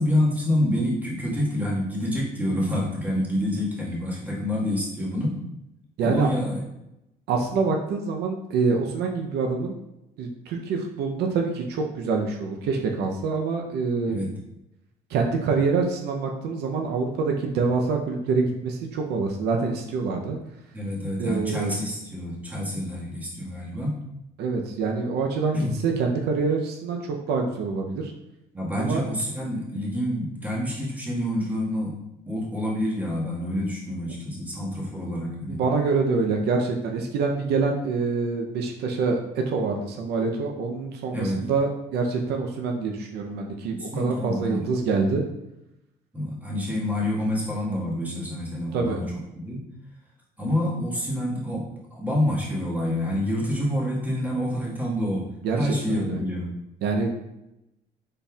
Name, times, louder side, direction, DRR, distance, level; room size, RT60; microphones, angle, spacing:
voice 1, 0.0-5.4 6.0-6.6 14.0-14.4 20.7-24.0 25.5-25.7 28.5-31.9 32.3-35.6 41.1-41.5 43.9-44.7 46.1-49.0 49.3-49.6 50.4-55.3 55.5-56.5, left 1 dB, 10° right, -5 dB, 1.6 m, -27 dB
voice 2, 6.0-6.3 7.3-9.7 10.2-14.2 15.1-20.4 21.2-21.7 24.4-28.1 28.8-29.0 35.5-45.2 48.7-49.0 55.4-56.2 56.8-57.1, right 4 dB, 75° right, 2 dB, 0.7 m, -26 dB
5.3 x 4.2 x 2.4 m, 0.88 s
cardioid pair, 110°, 17 cm